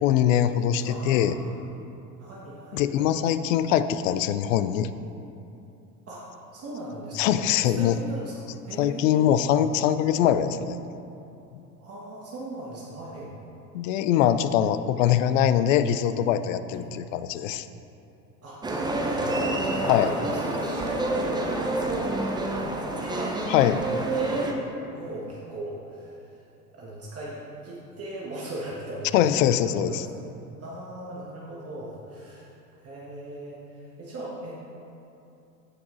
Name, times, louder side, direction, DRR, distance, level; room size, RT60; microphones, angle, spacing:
voice 1, 0.0-1.4 2.7-4.9 7.2-8.0 8.8-10.8 11.5-11.6 13.7-17.7 19.9-20.1 23.5-23.8 29.1-30.1, left 10 dB, 55° left, 12 dB, 0.5 m, -23 dB
voice 2, 0.8-1.5 2.2-3.1 6.1-6.3 6.5-9.4 11.8-13.3 16.7-17.0 18.4-18.6 19.0-22.3 22.6-23.4 23.8-24.5 24.9-26.4 26.7-30.1 30.6-32.5 32.8-34.6, right 1 dB, 30° right, -5 dB, 1.4 m, -38 dB
sound 1, 18.6-24.5, right 2 dB, 10° right, 0.7 m, -28 dB
15.5 x 5.9 x 2.6 m, 2.7 s
figure-of-eight pair, 85°, 49 cm